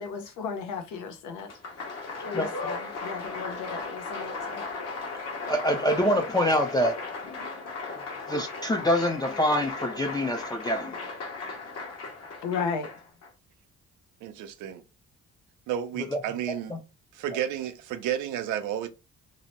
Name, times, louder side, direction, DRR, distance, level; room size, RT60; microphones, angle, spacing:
voice 1, 0.0-1.5 2.2-4.6 12.4-12.9, left 6 dB, 80° left, 0.7 m, -34 dB
Applause, 1.4-13.3, left 3 dB, 55° left, 1.0 m, -36 dB
voice 2, 5.5-7.0 8.3-11.0 16.1-16.2 16.7-16.8, equal, 15° left, 0.4 m, -25 dB
voice 3, 14.2-14.8 15.7-16.8 17.1-18.9, right 10 dB, 85° right, 0.5 m, -31 dB
2.7 x 2.1 x 2.9 m
cardioid pair, 90°, 30 cm